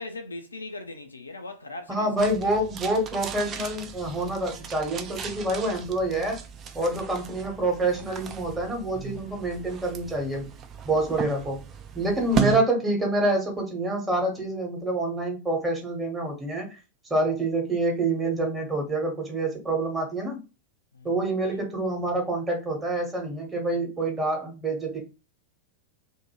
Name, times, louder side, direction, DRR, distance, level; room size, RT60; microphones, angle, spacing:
voice 1, 0.0-2.1 20.9-21.1 21.4-21.6, left 2 dB, 80° left, 0.3 m, -39 dB
voice 2, 1.9-6.4 6.7-10.5 10.8-11.6 11.9-16.8 17.1-20.4 21.0-25.0, right 2 dB, 15° right, 1.1 m, -27 dB
sound 1, 2.2-12.6, right 6 dB, 30° right, 0.4 m, -35 dB
2.6 x 2.2 x 3.0 m
figure-of-eight pair, 90°, 0 cm